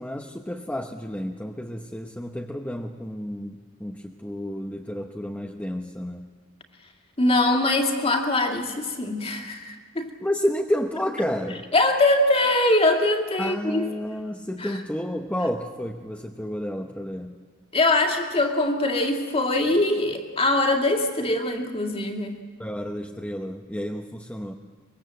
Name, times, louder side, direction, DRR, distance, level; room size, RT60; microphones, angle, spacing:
voice 1, 0.0-6.3 10.2-11.7 13.4-17.4 22.6-24.5, equal, 5° left, 2 dB, 0.9 m, -30 dB
voice 2, 7.2-10.1 11.7-13.9 14.6-14.8 17.7-22.4, left 2 dB, 30° left, 4 dB, 2.4 m, -22 dB
24.5 x 22.5 x 7.8 m, 1.5 s
head